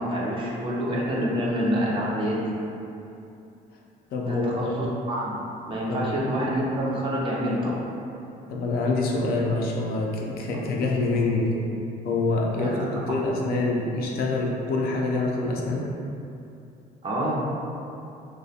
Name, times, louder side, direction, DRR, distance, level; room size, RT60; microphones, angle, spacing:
voice 1, 0.0-2.5 4.2-7.8 12.6-12.9 17.0-17.4, equal, 30° right, -5 dB, 0.5 m, -27 dB
voice 2, 4.1-4.7 5.9-6.1 8.5-11.5 12.0-15.8, left 2 dB, 65° left, -2 dB, 0.4 m, -26 dB
2.3 x 2.1 x 2.7 m, 2.7 s
cardioid pair, 110°, 17 cm